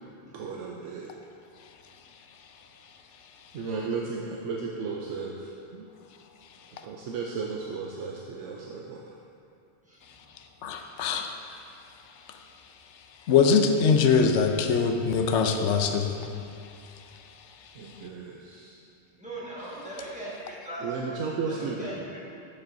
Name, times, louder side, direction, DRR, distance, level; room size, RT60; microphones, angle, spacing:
voice 1, 0.3-1.1 3.5-5.3 5.7-5.8 6.9-9.0 17.8-18.7 20.8-22.0, right 4 dB, 80° right, -1 dB, 0.9 m, -34 dB
voice 2, 10.6-11.3 13.3-16.2, left 5 dB, 75° left, 5 dB, 0.9 m, -22 dB
voice 3, 19.2-20.8 21.1-21.2 21.6-22.2, right 1 dB, 5° right, -8 dB, 1.3 m, -39 dB
8.7 x 7.4 x 2.6 m, 2.5 s
omnidirectional pair, 1.2 m